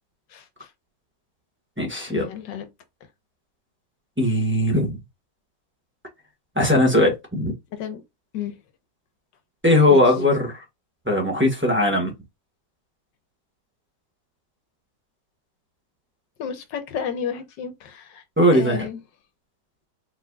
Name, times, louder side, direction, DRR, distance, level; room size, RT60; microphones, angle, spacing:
voice 1, 0.3-0.7 2.1-2.7 7.7-8.0 8.3-8.5 9.9-10.0 16.4-18.2 18.5-19.0, left 8 dB, 80° left, 1.6 m, -31 dB
voice 2, 1.8-2.3 4.2-5.0 6.5-7.5 9.6-10.6 11.0-12.1 18.4-18.9, left 1 dB, 5° right, 1.3 m, -19 dB
4.5 x 4.2 x 2.3 m
omnidirectional pair, 1.9 m